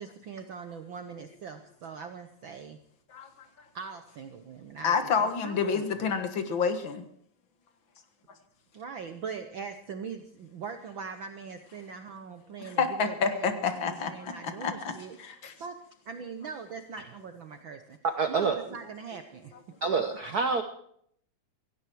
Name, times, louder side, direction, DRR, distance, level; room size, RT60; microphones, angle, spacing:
voice 1, 0.0-2.8 3.7-6.1 8.7-15.2 15.6-15.7 16.1-18.0 18.3-19.5, right 6 dB, 65° right, 8 dB, 1.2 m, -41 dB
voice 2, 4.8-7.0 12.8-14.3 14.6-14.9 15.2-15.5, left 5 dB, 50° left, 8 dB, 1.9 m, -28 dB
voice 3, 18.2-18.6 19.8-20.6, right 5 dB, 90° right, 8 dB, 0.8 m, -27 dB
17.0 x 16.5 x 4.7 m, 0.65 s
omnidirectional pair, 3.4 m